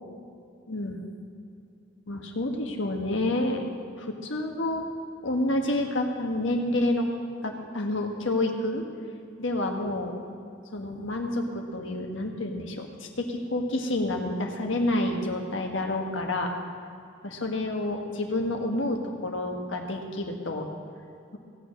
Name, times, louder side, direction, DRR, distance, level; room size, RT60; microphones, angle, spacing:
voice 1, 0.7-1.0 2.1-3.6 4.0-4.8 5.2-7.1 7.4-8.8 9.4-10.1 10.7-16.5 17.2-20.7, left 1 dB, 70° left, 2 dB, 1.5 m, -29 dB
17.0 x 6.9 x 6.4 m, 2.5 s
head